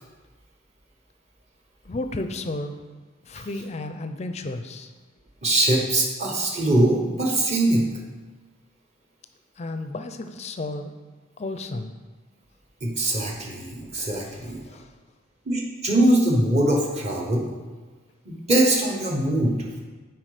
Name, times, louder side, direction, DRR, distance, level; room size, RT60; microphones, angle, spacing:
voice 1, 1.8-2.8 3.2-4.9 9.6-10.9 11.4-11.9 14.2-14.9, left 2 dB, 30° left, 8 dB, 0.4 m, -33 dB
voice 2, 5.4-7.8 12.8-14.6 15.5-17.4 18.2-19.6, right 1 dB, 30° right, 0 dB, 1.0 m, -22 dB
7.3 x 4.8 x 5.0 m, 1.3 s
head